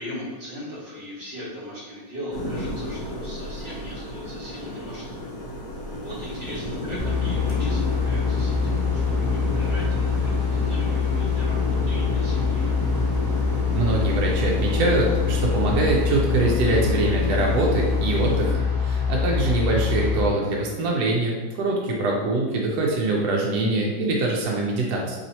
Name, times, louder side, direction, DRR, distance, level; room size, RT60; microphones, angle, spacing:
voice 1, 0.0-5.2 6.0-12.7, equal, 35° right, -7 dB, 1.2 m, -39 dB
sound 1, 2.3-18.6, equal, 60° left, 1.0 m, -31 dB
sound 2, 7.0-20.3, left 6 dB, 15° right, 1.0 m, -24 dB
voice 2, 13.7-25.2, right 2 dB, 70° right, -2 dB, 1.0 m, -24 dB
3.1 x 2.8 x 4.1 m, 1.3 s
omnidirectional pair, 2.0 m